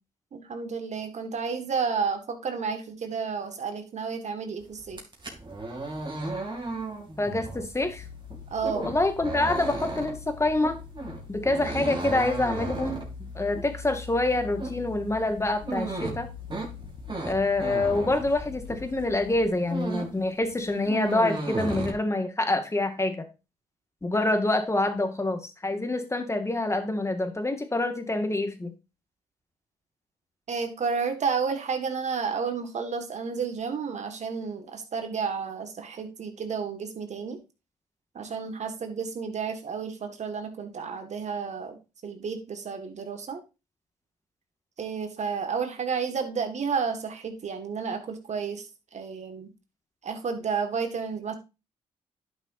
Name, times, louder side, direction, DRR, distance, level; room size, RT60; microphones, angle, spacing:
voice 1, 0.3-5.0 8.5-8.9 30.5-37.4 38.1-43.4 44.8-48.7 48.9-49.5 50.0-51.3, right 5 dB, 55° right, 6 dB, 1.9 m, -31 dB
sound 1, 4.8-18.9 19.3-20.2 20.5-21.9, right 2 dB, 35° right, 2.9 m, -35 dB
voice 2, 7.2-8.0 8.7-10.8 11.3-13.0 13.4-16.3 17.3-23.3 24.0-28.7, left 2 dB, 20° left, 7 dB, 2.0 m, -26 dB
sound 2, 7.8-19.5, left 6 dB, 65° left, 1.1 m, -43 dB
11.0 x 6.2 x 2.7 m, 0.28 s
supercardioid pair, 55°, 14 cm